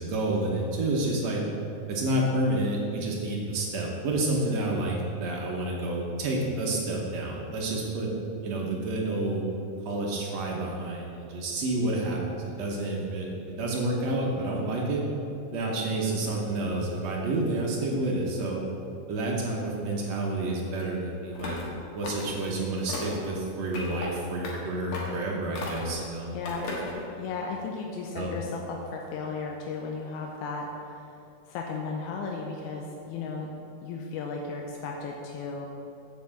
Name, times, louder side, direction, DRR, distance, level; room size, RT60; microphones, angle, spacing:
voice 1, 0.0-1.4 1.9-8.1 8.4-9.4 9.9-15.0 15.5-18.6 19.1-21.6 21.9-26.3 26.7-27.0 28.1-28.3, right 2 dB, 65° right, -2 dB, 1.9 m, -29 dB
sound 1, 21.3-21.7 22.0-22.5 22.9-23.3 23.7-24.1 24.4-24.6 24.9-25.2 25.5-26.0 26.4-27.0, left 3 dB, 60° left, 2.5 m, -36 dB
voice 2, 26.3-26.8 27.2-31.1 31.5-33.5 33.8-35.7, left 4 dB, 80° left, 0 dB, 1.8 m, -35 dB
7.7 x 5.6 x 7.2 m, 2.8 s
omnidirectional pair, 3.9 m